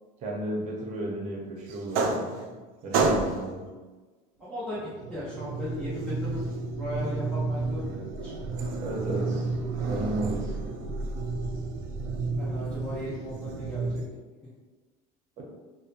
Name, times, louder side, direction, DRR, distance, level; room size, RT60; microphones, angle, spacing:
voice 1, 0.2-2.3 2.8-3.6 5.1-5.2 8.8-9.5 9.9-10.6 15.4-15.5, right 1 dB, 45° right, -2 dB, 0.8 m, -33 dB
sound 1, 1.7-2.6 2.9-3.6 4.7-14.1, right 3 dB, 75° right, 0.4 m, -30 dB
voice 2, 4.4-4.8 5.1-6.5 6.8-8.3 12.4-14.0, left 1 dB, 5° left, -11 dB, 0.7 m, -36 dB
2.8 x 2.1 x 2.5 m, 1.3 s
supercardioid pair, 115°, 17 cm